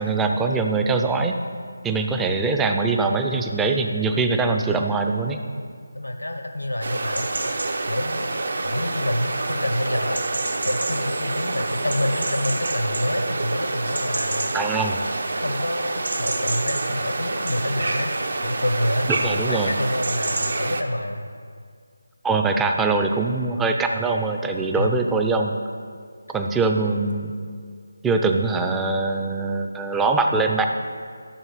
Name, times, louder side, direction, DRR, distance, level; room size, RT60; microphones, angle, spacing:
voice 1, 0.0-1.4 1.8-5.4 14.5-15.0 19.2-19.8 22.2-25.6 26.3-27.3 28.0-30.7, right 3 dB, 5° right, 4 dB, 0.4 m, -22 dB
voice 2, 5.9-7.3 7.9-8.2 8.6-10.2 10.6-14.6 15.3-18.1 18.4-21.3 24.7-25.0, left 1 dB, 85° left, 5 dB, 1.1 m, -27 dB
sound 1, 6.8-20.8, right 2 dB, 60° right, 0.8 m, -27 dB
13.0 x 7.0 x 4.1 m, 2.1 s
figure-of-eight pair, 160°, 0 cm